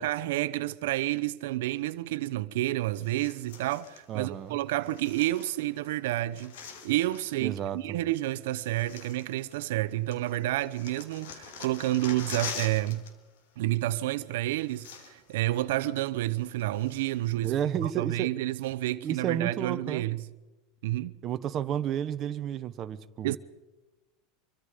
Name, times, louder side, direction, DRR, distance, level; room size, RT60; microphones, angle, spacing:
voice 1, 0.0-13.0 13.6-20.2 20.8-21.1 23.2-23.4, right 16 dB, 75° right, 0.8 m, -30 dB
sound 1, 3.0-4.0 4.8-5.9 6.1-7.4 8.2-8.3 8.6-9.8 10.1-13.1 13.4-13.6 14.3-14.4 14.6-15.4 15.7-15.8 16.3-17.3 17.8-17.9, left 6 dB, 85° left, 3.5 m, -44 dB
voice 2, 4.1-4.6 7.4-8.0 17.4-18.3 19.0-20.0 21.2-23.4, right 9 dB, 30° right, 1.0 m, -32 dB
26.0 x 24.0 x 5.1 m
supercardioid pair, 170°, 0 cm